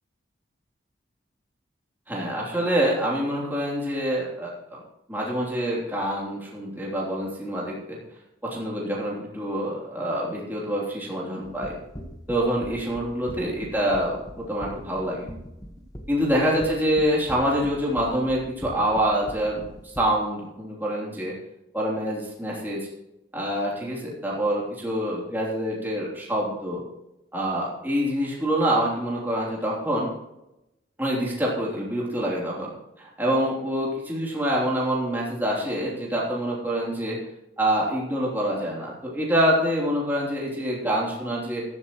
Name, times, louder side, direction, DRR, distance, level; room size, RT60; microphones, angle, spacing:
voice 1, 2.1-4.8 5.1-8.0 8.4-11.8 12.3-15.3 16.1-19.6 20.0-21.4 21.7-22.9 23.3-26.8 27.3-30.1 31.0-32.7 33.0-37.2 37.6-41.6, equal, 10° right, -5 dB, 3.2 m, -26 dB
sound 1, 11.4-20.0, equal, 20° left, 1.3 m, -40 dB
14.5 x 13.0 x 3.1 m, 0.88 s
head